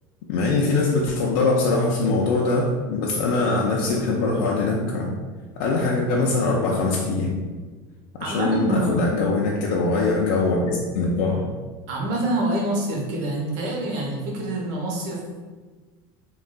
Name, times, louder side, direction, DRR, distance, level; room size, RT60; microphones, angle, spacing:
voice 1, 0.3-5.2 5.6-7.4 8.2-11.5, left 3 dB, 75° left, -2 dB, 0.4 m, -22 dB
voice 2, 8.2-9.1 11.9-15.4, right 1 dB, 60° right, -2 dB, 0.9 m, -26 dB
3.7 x 2.3 x 2.2 m, 1.4 s
supercardioid pair, 140°, 12 cm